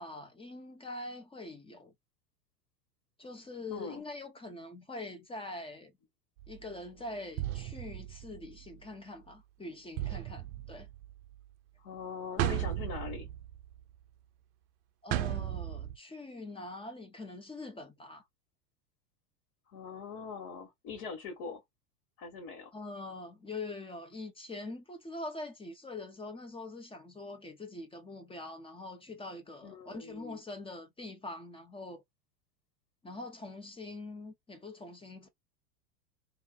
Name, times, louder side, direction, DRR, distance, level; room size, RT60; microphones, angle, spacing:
voice 1, 0.0-1.9 3.2-5.9 6.5-10.9 15.0-18.2 22.7-32.0 33.0-35.3, left 2 dB, 10° left, 0.8 m, -44 dB
voice 2, 3.7-4.0 11.8-13.3 19.7-21.6 22.2-22.7 29.6-30.4, left 5 dB, 50° left, 1.7 m, -42 dB
sound 1, 6.4-6.6 7.4-8.7 10.0-11.3 12.4-13.9 15.1-16.0, right 13 dB, 40° right, 0.6 m, -35 dB
2.6 x 2.6 x 3.9 m
figure-of-eight pair, 90°, 48 cm